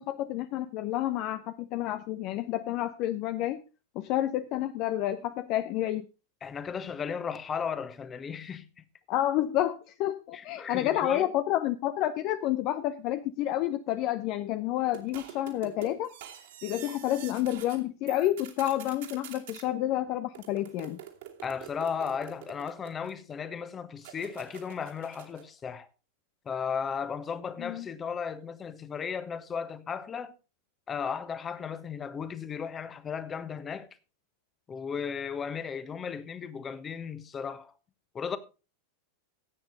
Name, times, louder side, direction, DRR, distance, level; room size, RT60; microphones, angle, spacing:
voice 1, 0.0-3.6 3.9-6.1 9.1-16.1 16.6-21.0 27.6-27.9, left 13 dB, 40° left, 0.7 m, -29 dB
voice 2, 6.4-8.7 10.3-11.3 21.4-25.9 26.4-30.3 30.9-33.9 34.7-37.7 38.1-38.4, left 6 dB, 20° left, 1.3 m, -35 dB
sound 1, 14.9-17.8 18.1-19.7 20.3-23.3 24.0-25.5, right 10 dB, 55° right, 2.6 m, -47 dB
15.5 x 8.9 x 4.0 m
figure-of-eight pair, 90°, 0 cm